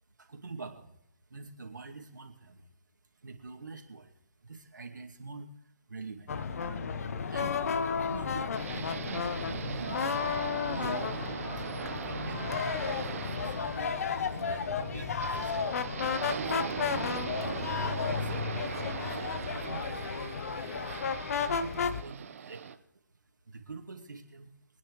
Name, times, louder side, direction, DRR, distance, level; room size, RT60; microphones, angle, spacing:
voice 1, 0.2-1.0 1.3-2.7 3.2-4.1 4.4-5.5 5.9-6.4 7.2-7.6 8.1-10.1 10.6-11.2 11.6-12.8 13.3-14.0 14.3-15.8 16.2-16.8 17.4-17.6 17.9-20.9 21.6-22.8 23.5-24.5, right 3 dB, 80° right, 2 dB, 2.5 m, -45 dB
sound 1, 6.3-22.0, left 6 dB, 55° left, 1.0 m, -33 dB
sound 2, 8.5-22.7, right 7 dB, 50° right, 1.1 m, -40 dB
25.0 x 10.0 x 3.2 m, 0.81 s
figure-of-eight pair, 150°, 10 cm